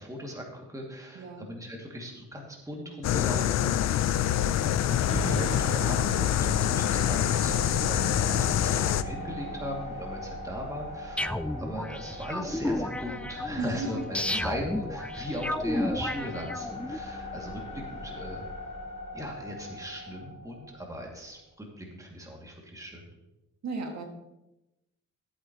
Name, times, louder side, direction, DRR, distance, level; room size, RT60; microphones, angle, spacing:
voice 1, 0.0-4.2 4.8-18.5 19.1-23.0, equal, 10° right, -1 dB, 2.5 m, -39 dB
voice 2, 1.1-1.5 8.1-8.3 13.6-13.9 14.2-14.4 23.6-24.0, right 4 dB, 65° right, 2 dB, 2.1 m, -36 dB
sound 1, 3.0-9.0, left 11 dB, 60° left, 0.6 m, -26 dB
sound 2, 5.1-21.2, left 1 dB, 20° left, 2.9 m, -38 dB
sound 3, 11.2-17.0, left 1 dB, 5° left, 0.3 m, -32 dB
14.5 x 8.6 x 3.1 m, 0.94 s
cardioid pair, 90°, 30 cm